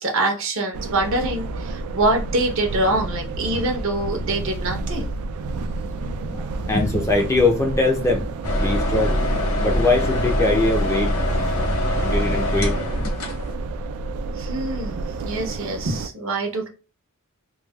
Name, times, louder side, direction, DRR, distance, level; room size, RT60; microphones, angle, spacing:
voice 1, 0.0-5.1 14.3-16.7, right 2 dB, 60° right, 0.8 m, -25 dB
sound 1, 0.7-16.1, right 3 dB, 80° right, 0.3 m, -30 dB
voice 2, 5.8-9.2 9.6-11.1 11.4-11.5 12.0-13.1, left 2 dB, 15° left, 0.4 m, -22 dB
sound 2, 8.4-13.5, left 1 dB, 90° left, 0.8 m, -23 dB
3.1 x 2.1 x 2.2 m
head